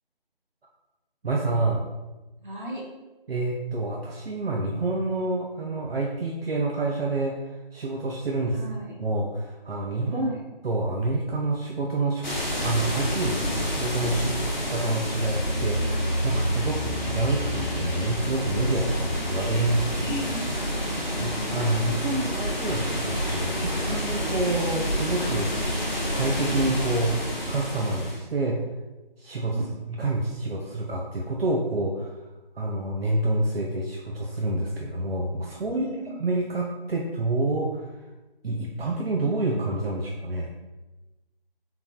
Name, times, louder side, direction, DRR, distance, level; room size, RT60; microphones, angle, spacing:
voice 1, 1.2-1.8 3.3-7.4 7.7-8.6 9.0-10.3 10.6-12.2 12.6-14.4 14.7-20.0 21.2-25.5 26.0-27.2 27.5-28.6 29.2-32.1 32.6-35.9 36.2-37.9 38.4-40.5, right 2 dB, 80° right, -1 dB, 0.5 m, -28 dB
voice 2, 2.4-2.9 8.4-9.0 10.0-10.4 16.8-17.3 20.0-21.5 29.5-29.8 35.7-36.2, equal, 55° right, -3 dB, 1.0 m, -37 dB
sound 1, 12.2-28.2, equal, 50° left, 0.8 m, -28 dB
3.7 x 2.8 x 2.3 m, 1.1 s
figure-of-eight pair, 165°, 29 cm